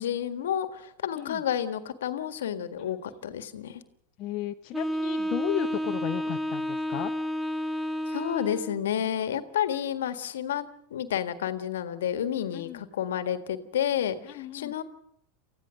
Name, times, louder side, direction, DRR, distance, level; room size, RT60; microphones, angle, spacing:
voice 1, 0.0-3.8 8.1-14.8, left 9 dB, 70° left, 10 dB, 1.7 m, -30 dB
voice 2, 4.2-7.1 12.5-12.8 14.3-14.7, left 13 dB, 45° left, 5 dB, 0.9 m, -34 dB
Wind instrument woodwind instrument, 4.7-8.8, equal, ahead, 1.2 m, -31 dB
28.5 x 15.0 x 6.4 m, 0.74 s
hypercardioid pair, 90°, 0 cm